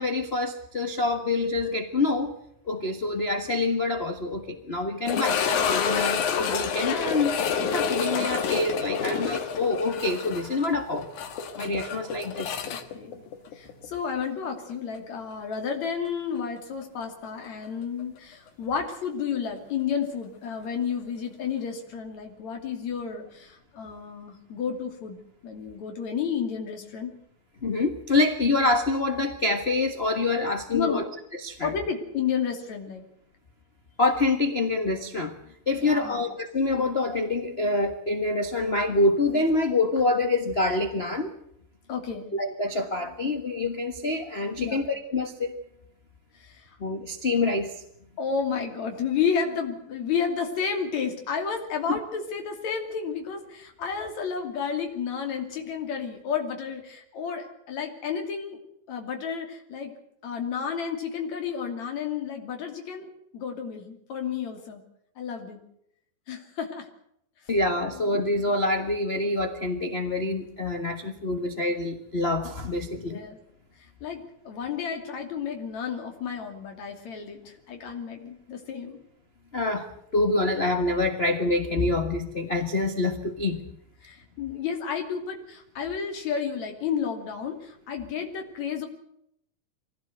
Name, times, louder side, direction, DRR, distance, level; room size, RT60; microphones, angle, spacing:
voice 1, 0.0-2.3 2.6-5.4 5.7-11.1 11.5-12.6 27.6-31.0 31.3-31.7 34.0-35.3 35.7-41.3 42.3-45.5 46.8-47.8 51.9-52.0 67.5-73.2 79.5-79.9 80.1-83.6, left 2 dB, 30° left, 6 dB, 1.1 m, -26 dB
sound 1, 5.1-14.0 14.2-14.3 15.0-15.1 17.6-17.7, left 6 dB, 85° left, 3.1 m, -28 dB
voice 2, 12.7-13.2 13.5-27.1 30.7-31.1 31.6-33.0 35.8-36.2 41.9-42.3 44.6-44.9 46.3-46.8 48.2-58.6 58.9-59.9 60.2-64.8 65.2-65.6 66.3-66.9 67.9-68.3 73.0-73.4 73.8-79.0 84.0-88.9, left 6 dB, 65° left, 4 dB, 4.0 m, -31 dB
24.0 x 17.0 x 8.0 m, 0.74 s
omnidirectional pair, 3.4 m